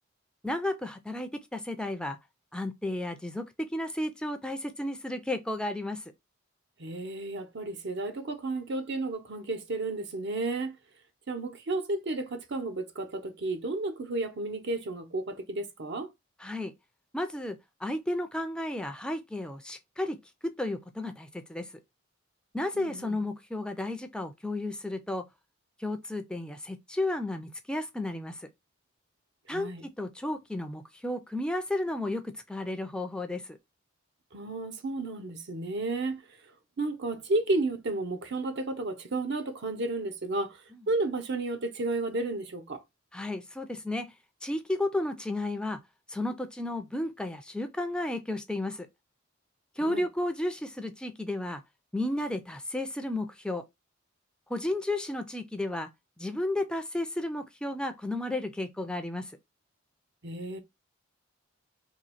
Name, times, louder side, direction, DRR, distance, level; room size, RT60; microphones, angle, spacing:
voice 1, 0.4-2.2 2.5-3.4 3.7-6.0 16.4-16.7 17.1-17.6 17.8-20.2 20.4-21.6 22.5-25.2 25.8-28.4 29.5-33.6 43.1-44.1 44.4-45.8 46.1-48.9 49.8-51.6 51.9-53.6 54.5-55.9 56.2-59.3, left 1 dB, 5° left, 0.4 m, -33 dB
voice 2, 6.8-10.7 11.3-16.1 22.7-23.2 29.5-29.8 34.3-36.2 36.8-40.6 40.9-42.8 49.8-50.1 60.2-60.6, right 2 dB, 60° right, 0.7 m, -32 dB
2.9 x 2.7 x 4.1 m
head